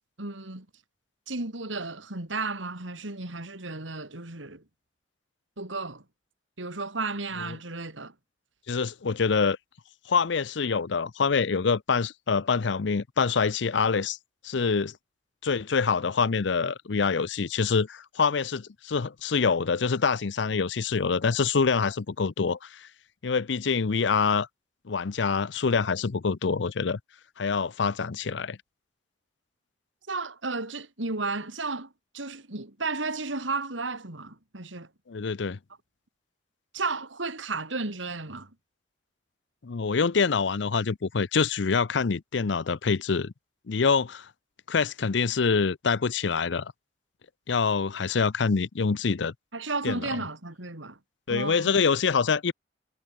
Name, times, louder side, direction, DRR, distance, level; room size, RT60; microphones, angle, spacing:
voice 1, 0.2-0.6 1.3-4.6 5.6-6.0 6.6-8.1 30.1-31.9 32.1-34.9 36.7-38.5 49.5-51.0 51.3-51.6, right 3 dB, 90° right, 3.4 m, -33 dB
voice 2, 8.7-9.6 10.1-14.2 14.4-14.9 15.4-22.9 23.2-24.5 24.9-27.0 27.4-28.6 35.1-35.6 39.6-43.3 43.7-44.3 44.7-46.7 47.5-49.3 49.8-50.1 51.3-52.5, left 5 dB, 65° left, 0.6 m, -25 dB
head